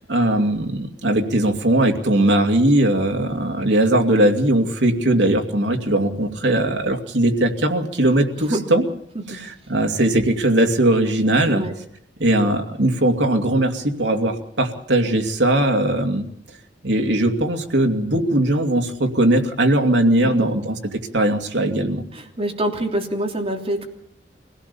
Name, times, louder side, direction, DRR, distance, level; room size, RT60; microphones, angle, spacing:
voice 1, 0.1-8.8 9.3-11.6 12.2-16.3 16.8-20.7 21.1-22.0, right 1 dB, 80° right, 3 dB, 2.6 m, -19 dB
voice 2, 8.4-8.7 9.3-9.4 11.5-11.7 20.2-20.5 22.1-23.8, right 1 dB, 35° right, 2 dB, 3.2 m, -26 dB
24.5 x 17.0 x 7.0 m, 0.65 s
head